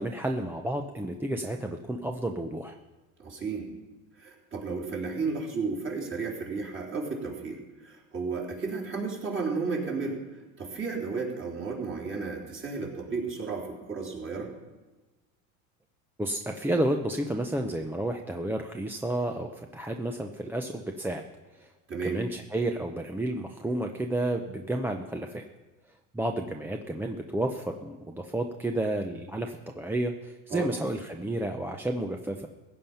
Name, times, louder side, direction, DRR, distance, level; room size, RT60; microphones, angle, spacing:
voice 1, 0.0-2.8 16.2-21.2 21.5-21.7 22.0-25.4 26.1-32.5, right 1 dB, 5° right, 4 dB, 0.6 m, -31 dB
voice 2, 3.2-3.7 4.2-14.5 21.9-22.2 30.5-30.7, right 4 dB, 30° right, -2 dB, 3.9 m, -33 dB
16.0 x 9.0 x 5.7 m, 1.2 s
supercardioid pair, 115°, 40 cm